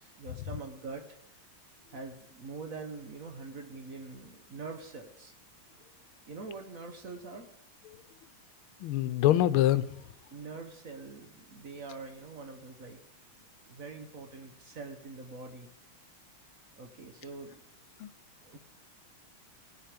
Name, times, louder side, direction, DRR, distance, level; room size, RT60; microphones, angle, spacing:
voice 1, 0.0-1.4 1.9-5.3 6.3-7.5 10.3-13.0 13.7-15.7 16.8-17.6 18.4-18.6, right 4 dB, 50° right, 5 dB, 1.3 m, -44 dB
voice 2, 8.8-9.9 18.0-18.1, left 13 dB, 90° left, 14 dB, 1.5 m, -24 dB
17.5 x 7.4 x 5.1 m, 0.77 s
omnidirectional pair, 2.3 m